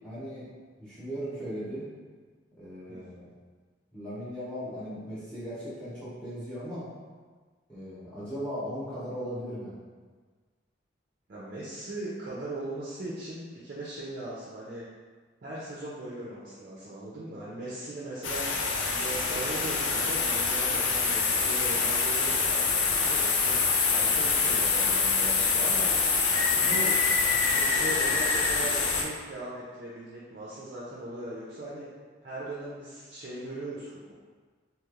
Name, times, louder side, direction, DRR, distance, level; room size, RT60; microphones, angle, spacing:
voice 1, 0.0-0.5 0.8-1.9 2.6-3.3 3.9-6.8 7.7-9.7, equal, 5° left, -13 dB, 0.7 m, -37 dB
voice 2, 11.3-14.9 15.4-25.9 26.4-26.9 27.4-31.9 32.2-34.1, right 1 dB, 45° right, -7 dB, 0.4 m, -39 dB
sound 1, 18.2-29.0, left 4 dB, 70° left, 0.4 m, -25 dB
3.1 x 2.9 x 2.4 m, 1.5 s
head